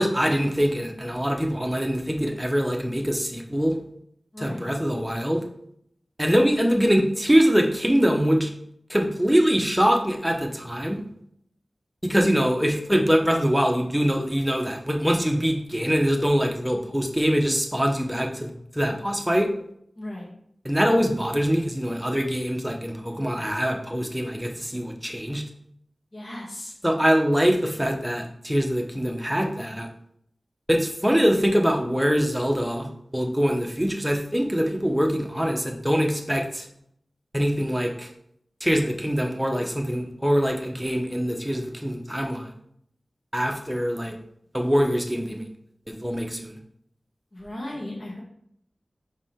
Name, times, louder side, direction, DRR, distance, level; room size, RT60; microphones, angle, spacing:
voice 1, 0.0-3.7 4.4-5.4 6.2-8.5 8.9-11.0 12.0-19.5 20.6-25.4 26.8-29.9 30.7-36.7 37.3-38.1 38.6-42.5 43.3-44.2 44.5-45.4 45.9-46.5, equal, 5° right, 2 dB, 1.0 m, -23 dB
voice 2, 4.3-4.6 20.0-20.3 26.1-26.7 47.3-48.2, left 1 dB, 50° left, -3 dB, 2.3 m, -36 dB
5.5 x 4.8 x 3.7 m, 0.70 s
wide cardioid pair, 65°, 0 cm